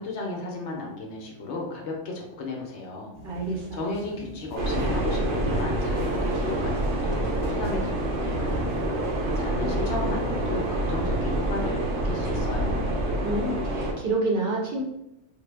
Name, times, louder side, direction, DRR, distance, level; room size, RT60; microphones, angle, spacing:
voice 1, 0.0-3.1 3.7-8.7 9.3-12.9, left 2 dB, 70° left, -1 dB, 1.0 m, -34 dB
sound 1, 3.1-11.2, equal, 40° left, 0.8 m, -43 dB
voice 2, 3.2-3.8 13.2-14.8, right 2 dB, 55° right, -3 dB, 0.8 m, -28 dB
sound 2, 4.6-13.9, right 1 dB, 80° right, 1.0 m, -27 dB
3.8 x 2.0 x 3.3 m, 0.88 s
omnidirectional pair, 1.2 m